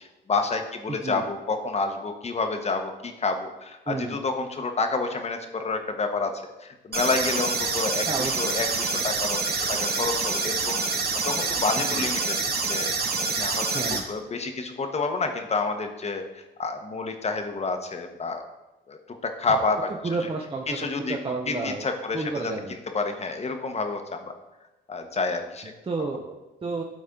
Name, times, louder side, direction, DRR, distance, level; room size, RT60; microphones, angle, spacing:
voice 1, 0.0-12.4 12.7-18.4 18.9-19.0 19.2-19.9 20.7-21.2 21.5-24.3 24.9-25.7, left 3 dB, 35° left, 6 dB, 1.1 m, -29 dB
voice 2, 0.9-1.2 3.9-4.2 8.1-8.5 11.9-12.1 13.7-14.1 20.0-20.7 21.1-21.8 22.1-22.7 25.9-26.8, right 3 dB, 25° right, 0 dB, 0.8 m, -31 dB
sound 1, 6.9-14.0, right 4 dB, 50° right, 1.5 m, -27 dB
12.5 x 4.2 x 3.8 m, 1.1 s
cardioid pair, 90°, 20 cm